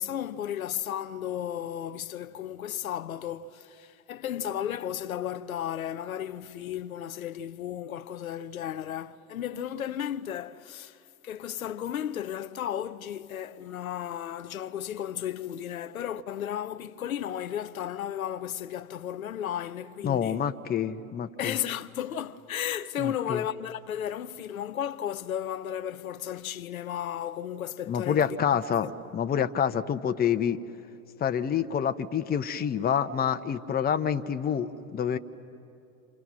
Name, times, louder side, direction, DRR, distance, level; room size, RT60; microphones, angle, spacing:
voice 1, 0.0-20.4 21.4-28.4 28.8-28.9, left 10 dB, 85° left, 0.7 m, -34 dB
voice 2, 20.0-21.6 23.0-23.4 27.9-28.9 29.1-30.6 31.2-35.2, left 8 dB, 20° left, 0.9 m, -27 dB
28.0 x 27.5 x 6.3 m
hypercardioid pair, 90°, 41 cm